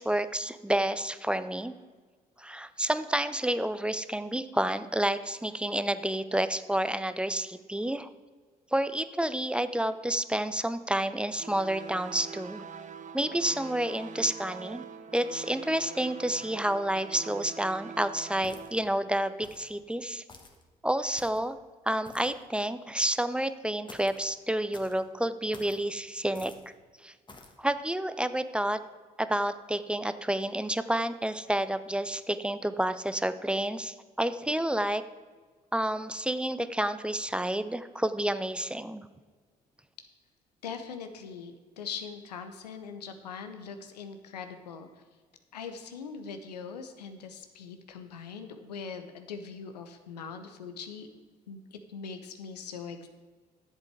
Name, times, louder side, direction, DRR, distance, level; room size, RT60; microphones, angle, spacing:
voice 1, 0.0-1.8 2.4-8.1 8.7-12.6 13.1-14.9 15.1-20.2 20.8-21.6 21.9-26.5 27.0-27.1 27.6-28.8 29.2-35.0 35.7-39.1, right 1 dB, 5° right, 12 dB, 0.6 m, -29 dB
sound 1, 11.4-18.7, right 5 dB, 40° right, 0.8 m, -44 dB
sound 2, 18.4-18.9 19.4-19.7 20.3-20.6 21.1-21.5 22.0-22.4 23.9-24.2 24.7-25.0 25.5-25.8 26.3-26.7 27.3-27.6, left 2 dB, 20° left, 1.6 m, -50 dB
voice 2, 40.6-44.9 45.5-51.1 51.5-53.1, left 6 dB, 90° left, 8 dB, 0.8 m, -41 dB
11.0 x 7.6 x 4.7 m, 1.5 s
hypercardioid pair, 50°, 20 cm